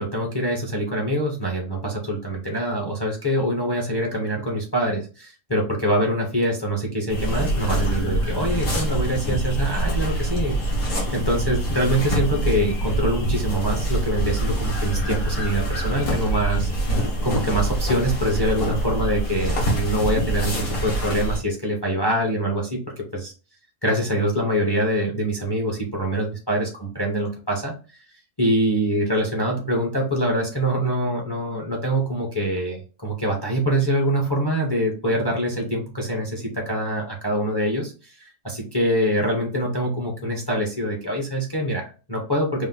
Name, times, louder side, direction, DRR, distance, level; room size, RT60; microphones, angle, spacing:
voice 1, 0.0-16.7 17.2-23.3 23.8-27.7 28.4-42.7, right 1 dB, 20° left, 0 dB, 0.7 m, -24 dB
sound 1, 7.1-21.4, right 1 dB, 65° left, 1.9 m, -25 dB
5.1 x 2.1 x 3.8 m, 0.35 s
omnidirectional pair, 1.7 m